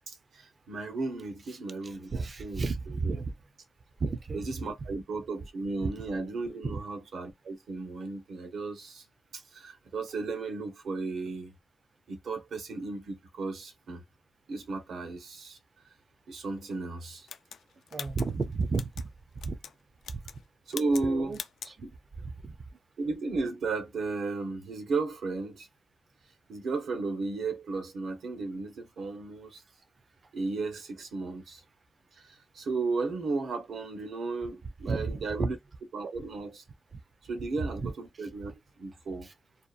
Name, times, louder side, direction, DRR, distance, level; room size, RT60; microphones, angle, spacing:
voice 1, 0.1-2.7 3.0-3.2 4.3-9.0 9.3-11.5 12.1-14.0 14.5-15.6 16.3-17.3 20.7-21.3 21.8-21.9 23.0-25.7 26.5-29.6 30.3-31.6 32.1-35.6 35.9-36.6 37.2-38.5 38.8-39.3, right 3 dB, 70° right, 0.7 m, -34 dB
voice 2, 1.8-3.4 4.0-4.5 5.8-5.9 6.6-6.8 17.9-19.1 19.4-19.6 20.1-20.2 21.0-21.4 21.7-21.8 22.2-22.6 34.9-35.5 36.9-37.0 37.6-37.9 38.2-38.3 39.2-39.3, right 4 dB, 35° right, 0.4 m, -33 dB
sound 1, 17.3-19.1 19.4-19.7 20.0-20.4 20.7-21.1 21.3-21.7, left 8 dB, 80° left, 0.3 m, -42 dB
2.7 x 2.2 x 2.3 m
wide cardioid pair, 145°, 0 cm